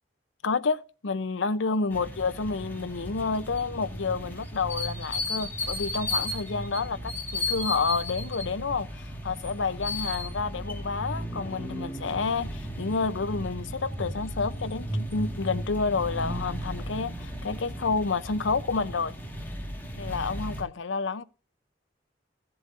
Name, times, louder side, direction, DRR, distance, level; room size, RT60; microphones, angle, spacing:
voice 1, 0.4-19.1 20.0-21.2, left 4 dB, 85° left, 0.7 m, -29 dB
sound 1, 1.9-20.6, left 1 dB, 10° left, 1.7 m, -35 dB
15.5 x 7.8 x 2.6 m
head